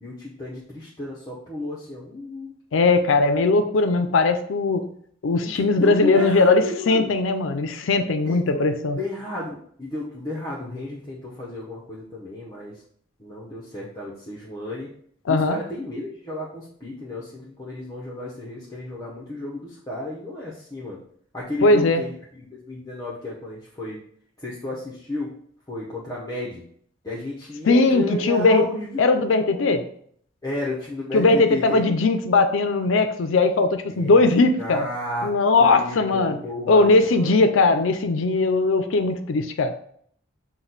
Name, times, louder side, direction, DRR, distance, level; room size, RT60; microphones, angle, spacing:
voice 1, 0.0-2.5 5.4-7.1 8.2-12.7 13.2-14.9 15.3-21.0 21.3-22.1 22.6-24.0 24.4-25.3 25.7-26.6 27.0-29.1 29.5-29.6 30.4-32.0 33.9-34.2 34.6-35.3 35.6-37.3, left 1 dB, 20° left, -5 dB, 0.7 m, -32 dB
voice 2, 2.7-4.9 5.2-9.0 15.3-15.6 21.6-22.0 27.6-28.7 29.0-29.8 31.1-34.9 35.2-36.4 36.7-39.7, left 3 dB, 80° left, 8 dB, 0.5 m, -19 dB
6.0 x 2.2 x 3.9 m, 0.62 s
head